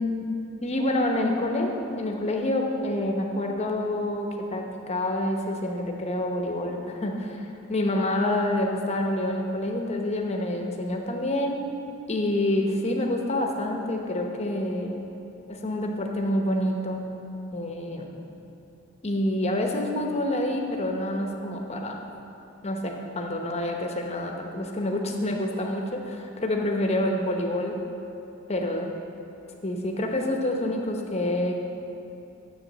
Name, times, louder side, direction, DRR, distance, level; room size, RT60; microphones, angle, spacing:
voice 1, 0.0-11.6 12.1-15.1 15.5-17.0 17.5-18.1 19.0-22.0 22.6-27.8 28.5-28.9 29.6-31.6, left 1 dB, 30° left, 2 dB, 0.9 m, -27 dB
7.4 x 7.0 x 7.4 m, 2.9 s
head